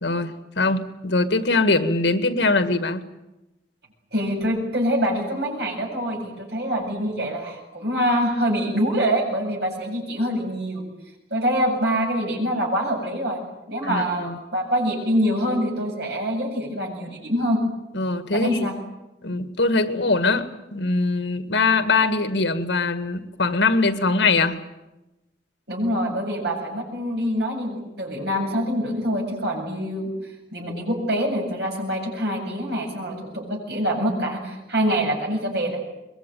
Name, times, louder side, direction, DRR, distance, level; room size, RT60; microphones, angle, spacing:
voice 1, 0.0-3.0 13.8-14.4 17.9-18.7 19.2-24.6, left 3 dB, 90° left, 10 dB, 1.9 m, -22 dB
voice 2, 4.1-10.8 11.3-13.4 13.7-17.6 18.3-18.7 25.7-30.1 30.5-35.8, equal, 65° right, 1 dB, 8.0 m, -25 dB
23.5 x 22.0 x 9.3 m, 0.96 s
head